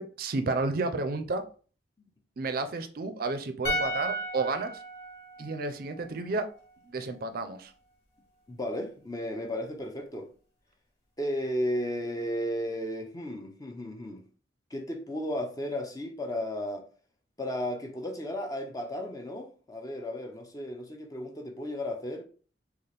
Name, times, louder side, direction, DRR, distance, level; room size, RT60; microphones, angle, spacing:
voice 1, 0.0-1.4 2.4-4.7 5.4-6.5 6.9-7.7, right 3 dB, 55° right, 0.4 m, -31 dB
sound 1, 3.6-6.9 7.1-7.3, equal, 65° left, 1.0 m, -35 dB
voice 2, 8.5-10.3 11.2-14.2 14.7-16.9 17.4-22.2, equal, 20° left, 0.5 m, -34 dB
3.9 x 2.4 x 3.3 m
head